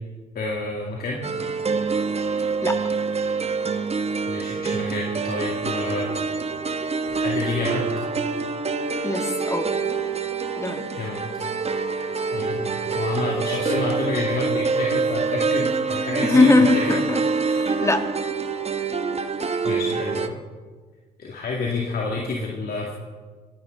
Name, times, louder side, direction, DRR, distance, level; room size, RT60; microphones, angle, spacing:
voice 1, 0.3-1.2 4.3-6.1 7.0-7.9 11.0-11.2 12.3-17.0 19.6-20.4 21.2-22.9, left 3 dB, 55° left, -2 dB, 2.4 m, -28 dB
sound 1, 1.2-20.3, right 4 dB, 35° right, 1.2 m, -26 dB
voice 2, 9.0-9.7 10.6-10.8 16.2-18.0, left 2 dB, 15° left, 5 dB, 2.2 m, -21 dB
26.0 x 9.8 x 3.9 m, 1.4 s
hypercardioid pair, 55°, 19 cm